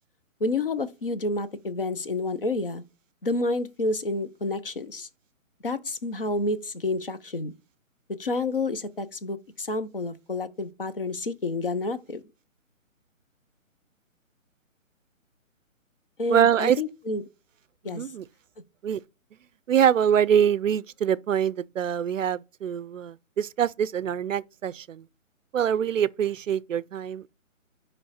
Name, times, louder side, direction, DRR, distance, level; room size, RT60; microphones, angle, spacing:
voice 1, 0.4-2.8 3.2-5.1 5.6-7.5 8.2-12.2 16.2-17.2 17.8-18.0, left 2 dB, 40° left, 0.7 m, -29 dB
voice 2, 16.3-16.8 17.8-18.2 18.8-19.0 19.7-25.1 25.5-27.3, right 9 dB, 70° right, 0.5 m, -24 dB
9.5 x 3.2 x 4.2 m
hypercardioid pair, 175°, 41 cm